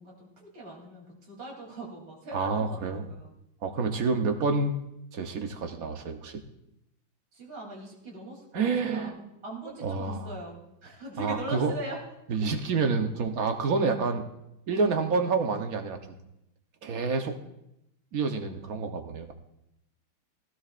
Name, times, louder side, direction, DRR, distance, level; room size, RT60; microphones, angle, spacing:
voice 1, 0.0-3.3 7.3-12.0, right 1 dB, 80° right, -3 dB, 4.2 m, -41 dB
voice 2, 2.3-3.0 3.6-4.8 5.1-6.4 8.5-9.1 9.8-10.2 11.2-11.7 12.3-14.2 14.7-16.0 16.8-17.4 18.1-19.3, right 4 dB, 50° right, 5 dB, 1.2 m, -28 dB
19.0 x 16.0 x 2.5 m, 0.85 s
omnidirectional pair, 2.3 m